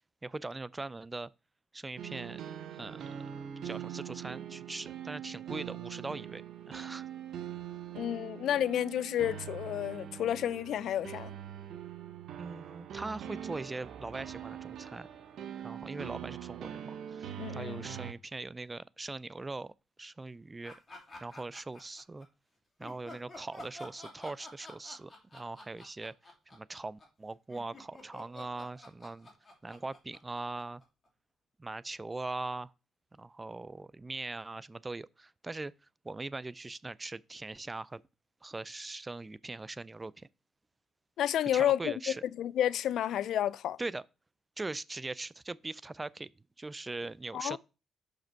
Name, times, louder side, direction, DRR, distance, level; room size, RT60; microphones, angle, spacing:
voice 1, 0.2-1.3 1.7-2.4 2.7-7.1 12.4-15.1 15.6-19.7 20.0-20.7 21.2-22.3 22.8-29.3 29.6-30.8 31.6-32.7 33.2-35.7 36.0-38.0 38.4-40.3 41.5-42.2 43.8-44.0 44.6-46.3 46.6-47.6, right 2 dB, 20° right, 0.3 m, -41 dB
sound 1, 2.0-18.1, right 10 dB, 70° right, 0.8 m, -43 dB
voice 2, 7.9-11.3 17.4-17.9 41.2-41.9 42.4-43.8 47.3-47.6, left 11 dB, 75° left, 0.3 m, -30 dB
sound 2, 20.6-22.2 22.8-31.1, left 1 dB, 25° left, 2.8 m, -50 dB
6.0 x 5.1 x 4.5 m
cardioid pair, 90°, 0 cm